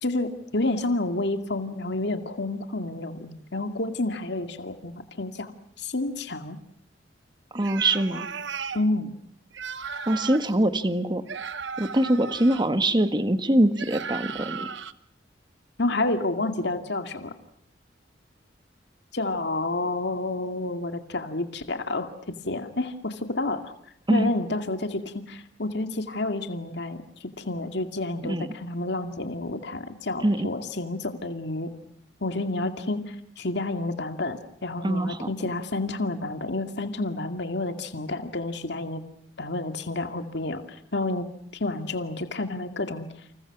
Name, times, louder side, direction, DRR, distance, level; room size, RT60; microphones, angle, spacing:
voice 1, 0.0-5.5 5.8-6.6 8.7-9.1 15.8-17.3 19.1-22.1 22.5-23.7 24.1-31.7 32.2-39.0 39.4-41.3 41.5-43.1, left 2 dB, 65° left, 7 dB, 2.3 m, -29 dB
voice 2, 7.5-8.3 10.1-11.2 11.8-14.7 24.1-24.3 28.2-28.5 30.2-30.5 34.8-35.3, right 1 dB, 25° right, 10 dB, 1.6 m, -23 dB
sound 1, 7.6-8.8 9.5-10.6 11.3-12.7 13.8-14.9, right 6 dB, 75° right, 1.1 m, -35 dB
29.5 x 28.0 x 6.1 m, 0.65 s
head